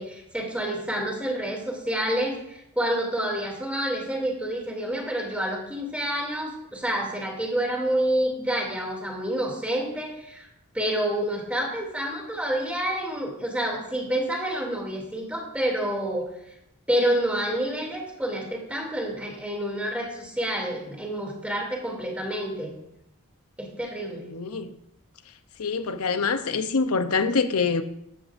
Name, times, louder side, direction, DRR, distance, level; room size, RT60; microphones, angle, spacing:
voice 1, 0.0-10.5 10.7-16.3 16.9-22.7 23.6-24.3, right 1 dB, 5° right, 2.7 m, -28 dB
voice 2, 24.3-24.7 25.6-27.8, left 4 dB, 85° left, 0.7 m, -25 dB
14.0 x 12.5 x 2.6 m
head